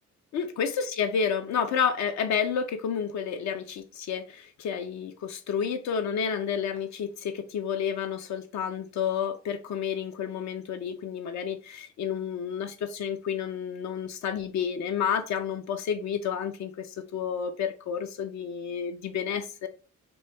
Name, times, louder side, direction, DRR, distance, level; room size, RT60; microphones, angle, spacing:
voice 1, 0.3-19.7, left 7 dB, 65° left, 0.5 m, -30 dB
3.0 x 2.1 x 3.3 m
cardioid pair, 90°, 30 cm